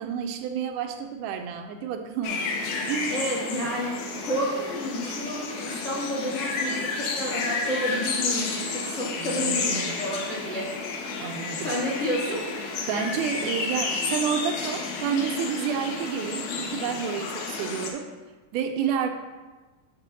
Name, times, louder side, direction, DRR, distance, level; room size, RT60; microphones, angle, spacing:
voice 1, 0.0-2.4 2.9-3.1 9.2-10.1 11.2-11.7 12.9-18.1 18.5-19.1, right 7 dB, 85° right, 6 dB, 1.8 m, -30 dB
sound 1, 2.2-17.9, left 4 dB, 90° left, 2.8 m, -31 dB
voice 2, 3.1-10.7 11.6-12.5, equal, 60° left, -5 dB, 0.7 m, -30 dB
11.0 x 6.8 x 2.7 m, 1.2 s
omnidirectional pair, 4.1 m